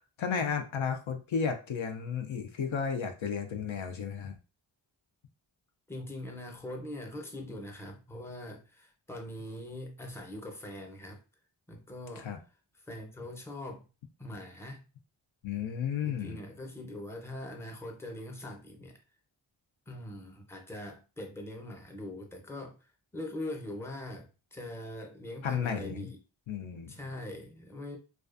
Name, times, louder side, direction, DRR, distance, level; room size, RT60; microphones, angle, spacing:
voice 1, 0.2-4.3 12.2-12.4 15.4-16.4 25.4-26.1 26.5-26.9, left 6 dB, 75° left, 5 dB, 0.5 m, -33 dB
voice 2, 5.9-11.2 11.7-12.3 12.8-13.9 14.2-14.8 16.0-18.9 19.9-26.2 26.9-28.0, left 1 dB, 5° left, 2 dB, 0.6 m, -42 dB
2.4 x 2.3 x 2.4 m, 0.33 s
wide cardioid pair, 45°, 48 cm